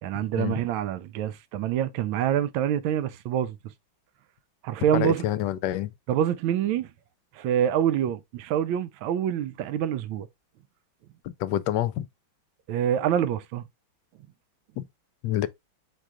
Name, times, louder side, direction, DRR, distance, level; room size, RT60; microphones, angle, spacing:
voice 1, 0.0-3.6 4.6-5.2 6.1-6.9 7.3-10.3 12.7-13.6, right 10 dB, 90° right, 1.4 m, -26 dB
voice 2, 4.9-5.9 11.4-12.1 14.8-14.9 15.2-15.5, left 12 dB, 75° left, 1.1 m, -27 dB
4.6 x 2.4 x 4.9 m
omnidirectional pair, 2.1 m